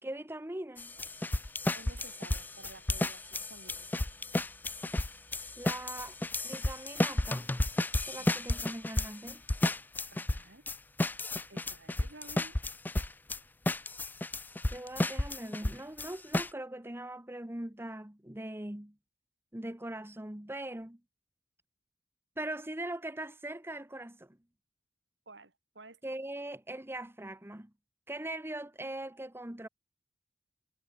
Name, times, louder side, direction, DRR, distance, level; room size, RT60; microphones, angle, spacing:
voice 1, 0.0-0.9 5.6-6.1 6.4-7.5 8.0-9.4 14.7-18.9 19.5-21.0 22.4-24.4 26.0-27.7 28.1-29.7, right 1 dB, 15° right, 1.3 m, -41 dB
sound 1, 0.8-13.4 13.7-16.5, left 2 dB, 10° left, 0.3 m, -32 dB
voice 2, 1.7-3.9 8.2-8.4 10.1-10.7 11.5-12.6 25.3-26.0, right 2 dB, 75° right, 4.5 m, -53 dB
head